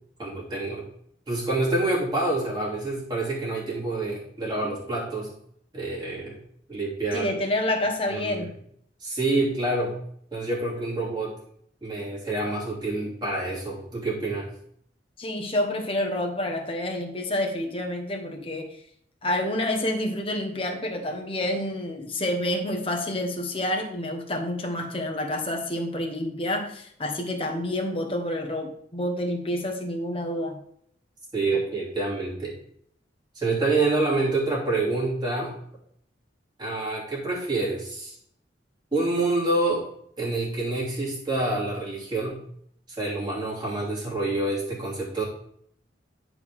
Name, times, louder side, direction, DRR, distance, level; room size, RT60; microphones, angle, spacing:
voice 1, 0.2-0.8 1.3-5.3 5.7-6.4 6.7-7.3 8.1-8.5 9.0-9.9 10.3-11.3 11.8-14.5 31.3-32.5 33.3-35.5 36.6-38.2 38.9-39.8 40.2-42.4 43.0-45.2, right 2 dB, 25° right, -6 dB, 3.0 m, -27 dB
voice 2, 7.1-8.5 15.2-18.8 19.2-30.6, left 1 dB, 30° left, 2 dB, 1.3 m, -28 dB
10.5 x 4.9 x 3.6 m, 0.66 s
head